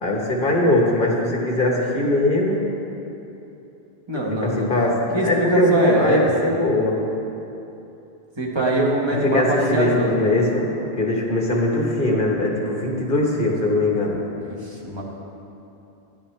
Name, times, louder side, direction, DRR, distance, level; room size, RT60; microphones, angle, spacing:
voice 1, 0.0-2.6 4.4-4.9 5.2-7.0 9.2-10.7 11.0-14.2, left 1 dB, 55° left, -1 dB, 1.4 m, -21 dB
voice 2, 4.1-4.7 5.1-6.6 8.4-10.3 14.4-15.0, right 1 dB, 25° right, -3 dB, 1.2 m, -23 dB
10.0 x 9.8 x 3.3 m, 2.9 s
omnidirectional pair, 1.0 m